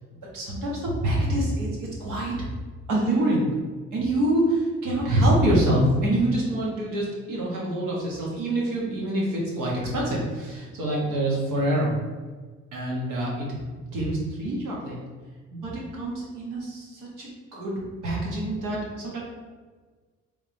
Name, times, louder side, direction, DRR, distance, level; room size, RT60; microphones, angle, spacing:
voice 1, 0.3-2.4 2.9-3.5 3.9-11.9 12.7-13.5 13.9-15.0 15.5-19.2, right 1 dB, 85° right, -4 dB, 1.4 m, -26 dB
3.6 x 3.4 x 3.2 m, 1.4 s
cardioid pair, 90°, 30 cm